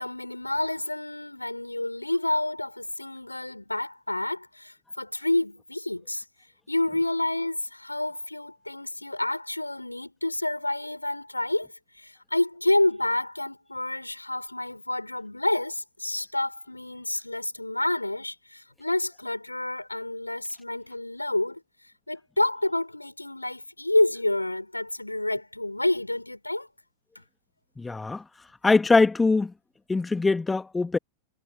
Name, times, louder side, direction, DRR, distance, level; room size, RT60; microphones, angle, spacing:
voice 1, 0.0-6.2 6.7-21.6 22.1-26.7, left 1 dB, 85° left, 5.5 m, -29 dB
voice 2, 27.8-28.2 28.6-29.5 29.9-31.0, left 3 dB, 10° left, 1.7 m, -22 dB
figure-of-eight pair, 90°, 0 cm